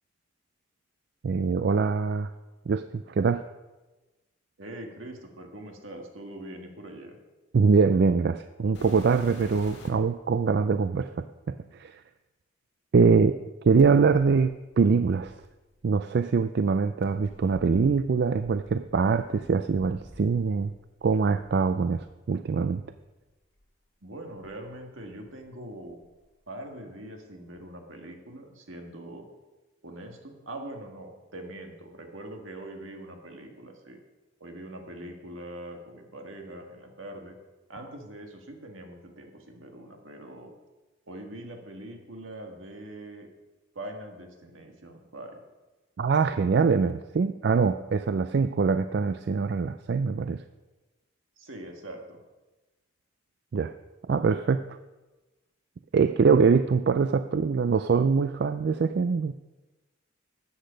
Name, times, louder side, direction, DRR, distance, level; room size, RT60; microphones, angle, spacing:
voice 1, 1.2-2.3 2.7-3.4 7.5-12.0 12.9-13.4 13.6-15.3 15.8-20.7 21.0-22.8 46.0-50.4 53.5-53.7 54.0-54.6 55.9-59.3, right 5 dB, 55° right, 11 dB, 0.3 m, -23 dB
voice 2, 4.6-7.2 24.0-26.0 26.5-29.3 29.8-34.0 34.4-37.4 37.7-40.5 41.1-43.3 43.8-45.4 51.4-52.2, right 1 dB, 75° right, 3 dB, 1.8 m, -42 dB
sound 1, 8.7-10.1 11.0-11.1 13.8-15.8 17.0-20.7 21.0-22.1 22.8-23.0 23.6-23.7 24.4-25.5 25.7-26.2 27.6-27.7, left 1 dB, 55° left, 2.0 m, -49 dB
13.0 x 8.0 x 5.2 m, 1.1 s
head